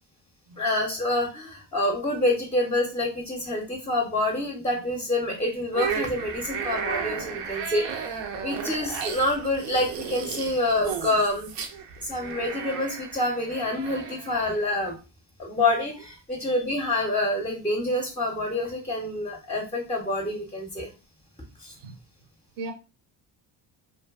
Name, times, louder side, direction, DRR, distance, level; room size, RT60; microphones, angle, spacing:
voice 1, 0.6-11.5 12.0-15.0 15.4-20.9 21.6-21.7, left 1 dB, 10° left, 0 dB, 0.5 m, -27 dB
sound 1, 5.7-14.9, right 6 dB, 85° right, 0.6 m, -34 dB
voice 2, 21.7-22.0 22.6-22.7, right 2 dB, 45° right, 6 dB, 0.6 m, -38 dB
2.5 x 2.4 x 2.3 m, 0.31 s
cardioid pair, 100°, 47 cm